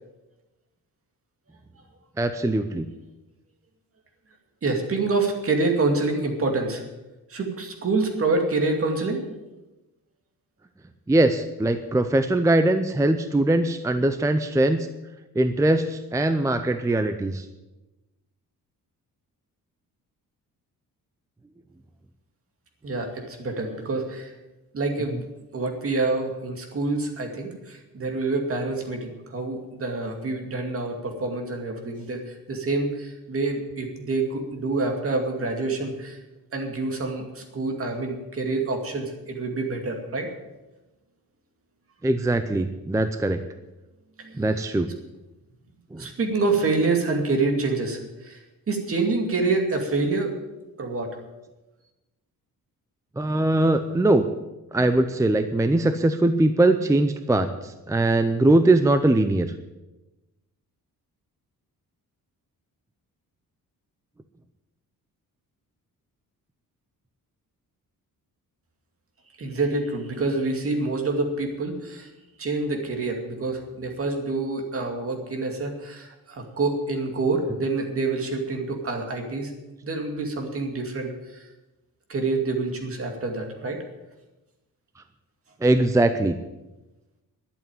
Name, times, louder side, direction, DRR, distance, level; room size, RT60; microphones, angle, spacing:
voice 1, 2.2-2.9 11.1-14.9 15.4-17.5 42.0-43.4 44.4-44.9 45.9-46.1 53.2-54.3 54.7-59.5 85.6-86.4, right 2 dB, 10° right, 9 dB, 0.5 m, -21 dB
voice 2, 4.6-6.8 7.3-9.2 22.8-24.3 24.7-25.2 25.5-36.2 36.5-40.3 44.2-44.8 46.0-48.4 48.7-50.3 50.8-51.2 69.4-72.1 72.4-79.5 79.8-81.5 82.1-83.8, right 3 dB, 40° right, 3 dB, 2.4 m, -27 dB
11.5 x 8.2 x 9.2 m, 1.0 s
wide cardioid pair, 150°, 36 cm